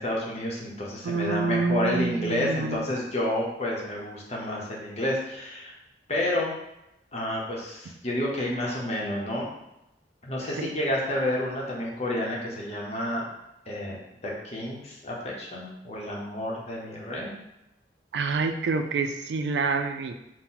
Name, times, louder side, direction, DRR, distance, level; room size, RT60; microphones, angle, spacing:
voice 1, 0.0-5.7 6.1-6.5 7.1-9.5 10.2-13.2 13.7-14.0 14.2-17.3, left 1 dB, 35° left, -3 dB, 0.8 m, -30 dB
voice 2, 1.0-2.9 10.6-10.7 18.1-20.1, right 4 dB, 80° right, 7 dB, 0.4 m, -27 dB
4.3 x 2.1 x 3.8 m, 0.87 s
head